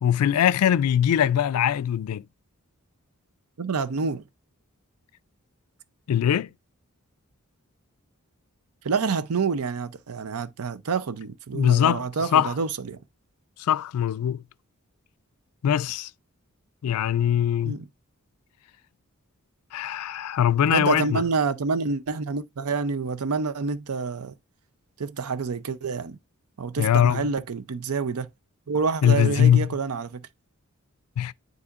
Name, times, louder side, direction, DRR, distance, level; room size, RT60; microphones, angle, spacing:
voice 1, 0.0-2.2 6.1-6.5 11.5-12.1 12.3-12.5 13.6-14.4 15.6-16.1 16.8-17.8 19.7-21.2 26.8-27.3 29.0-29.7 31.2-31.3, left 9 dB, 85° left, 0.3 m, -21 dB
voice 2, 3.6-4.2 8.8-13.0 17.6-17.9 20.6-24.3 25.0-26.2 26.6-28.3 28.7-30.3, right 4 dB, 85° right, 0.6 m, -28 dB
9.7 x 4.1 x 2.4 m
head